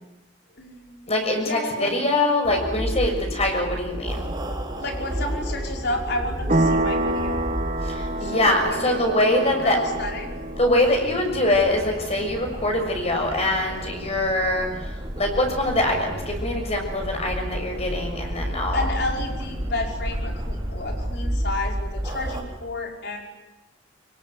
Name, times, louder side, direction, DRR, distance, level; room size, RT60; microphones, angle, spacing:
voice 1, 0.5-2.0 4.8-7.5 8.2-8.9 9.5-10.3 18.7-23.2, left 2 dB, 60° left, 2 dB, 5.5 m, -31 dB
voice 2, 1.1-4.3 7.8-9.8 10.6-18.8, left 1 dB, 35° left, 3 dB, 6.5 m, -23 dB
sound 1, 2.4-22.4, equal, 20° right, 4.0 m, -31 dB
sound 2, 6.5-14.8, right 1 dB, 40° right, 1.8 m, -29 dB
25.5 x 24.0 x 9.6 m, 1.0 s
head